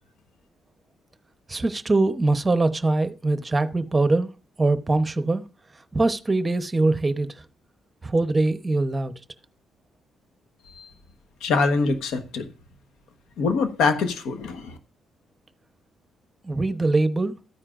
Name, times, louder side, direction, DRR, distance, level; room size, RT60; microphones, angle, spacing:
voice 1, 1.5-4.3 4.6-5.4 5.9-7.3 8.0-9.1 16.4-17.3, right 2 dB, 20° right, 0.9 m, -22 dB
voice 2, 11.4-12.5 13.4-14.7, left 4 dB, 85° left, 1.3 m, -24 dB
13.5 x 9.8 x 2.6 m
cardioid pair, 90°, 0 cm